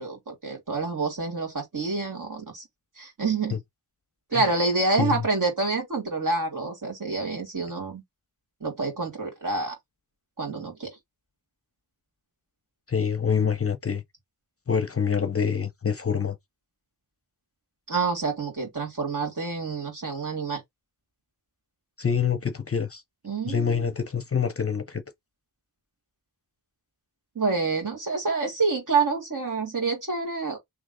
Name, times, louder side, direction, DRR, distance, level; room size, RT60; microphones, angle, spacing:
voice 1, 0.0-2.6 3.0-3.6 4.3-8.0 8.6-9.7 10.4-11.0 17.9-20.6 23.2-23.9 27.4-30.6, right 3 dB, 50° right, 2.2 m, -27 dB
voice 2, 12.9-14.0 14.7-16.4 22.0-23.0 23.5-25.0, left 6 dB, 35° left, 0.6 m, -26 dB
3.3 x 3.2 x 3.7 m
wide cardioid pair, 95°, 39 cm